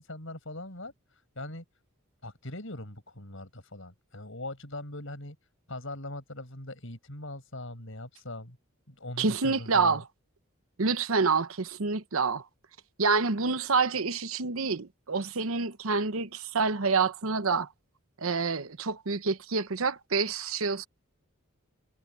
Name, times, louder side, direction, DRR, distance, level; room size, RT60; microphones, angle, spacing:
voice 1, 0.0-1.6 2.2-5.4 5.7-8.6 8.9-10.0, left 1 dB, 65° left, 7.0 m, -41 dB
voice 2, 9.2-10.0 10.8-12.4 13.0-17.7 18.2-20.9, right 4 dB, 75° right, 0.9 m, -27 dB
head